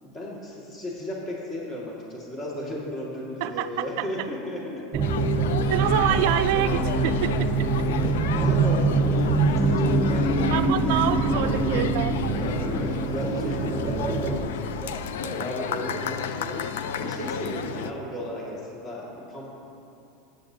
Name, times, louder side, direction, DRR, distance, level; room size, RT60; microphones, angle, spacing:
voice 1, 0.0-4.8 7.9-10.5 12.3-19.5, equal, 30° left, -5 dB, 2.1 m, -35 dB
voice 2, 3.4-4.1 4.9-5.0 5.7-7.9 10.5-12.2, right 13 dB, 65° right, 11 dB, 0.4 m, -27 dB
sound 1, 4.9-14.4, right 3 dB, 25° right, 0.9 m, -24 dB
sound 2, 5.0-17.9, left 7 dB, 85° left, 0.4 m, -33 dB
15.0 x 8.7 x 2.8 m, 2.7 s
supercardioid pair, 125°, 0 cm